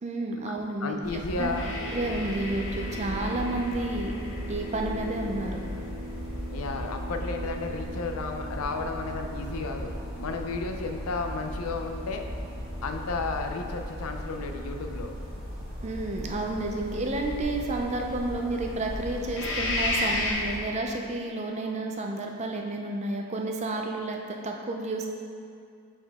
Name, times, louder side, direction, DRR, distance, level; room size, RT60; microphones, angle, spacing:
voice 1, 0.0-4.1 4.5-5.6 15.8-25.1, right 2 dB, 30° right, 1 dB, 0.4 m, -31 dB
voice 2, 0.8-1.8 6.5-9.9 10.2-12.2 12.8-15.1, left 3 dB, 80° left, 4 dB, 0.5 m, -33 dB
sound 1, 1.0-20.6, equal, 75° right, 1.4 m, -37 dB
sound 2, 1.5-14.6 19.3-20.3, left 1 dB, 55° left, 0.9 m, -37 dB
5.5 x 5.1 x 3.5 m, 2.4 s
head